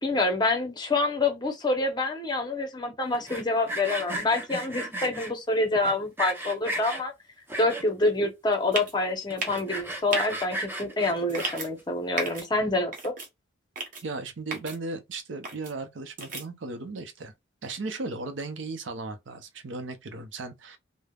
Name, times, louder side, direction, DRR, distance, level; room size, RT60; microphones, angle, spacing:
voice 1, 0.0-7.1 7.6-13.1, left 2 dB, 20° left, 0.8 m, -27 dB
Sawing, 3.1-5.3 5.8-7.0 7.5-8.1 8.5-8.6 8.8-8.9 9.3-11.8, right 1 dB, 10° right, 0.7 m, -34 dB
sound 1, 8.7-8.9 9.4-9.6 10.1-10.2 11.3-11.7 12.2-12.5 12.9-13.3 13.8-14.0 14.5-14.8 15.4-15.7 16.2-16.4, right 3 dB, 45° right, 0.9 m, -33 dB
voice 2, 14.0-17.3 17.6-20.8, right 3 dB, 75° right, 0.6 m, -36 dB
3.3 x 2.1 x 2.3 m
head